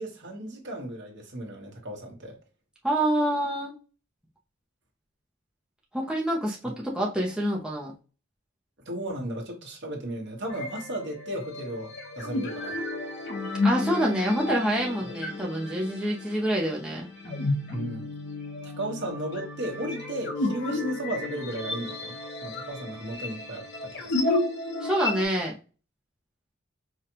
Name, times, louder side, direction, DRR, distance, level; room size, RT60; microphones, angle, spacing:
voice 1, 0.0-2.4 6.5-6.6 8.9-12.8 15.0-15.1 17.7-18.1 18.6-22.1 22.4-24.1, right 1 dB, 60° right, 1.3 m, -35 dB
voice 2, 2.8-3.8 5.9-7.9 13.6-17.1 24.8-25.5, right 1 dB, 5° right, 0.7 m, -27 dB
sound 1, 10.5-25.3, left 2 dB, 55° left, 1.1 m, -32 dB
4.9 x 2.4 x 2.9 m
head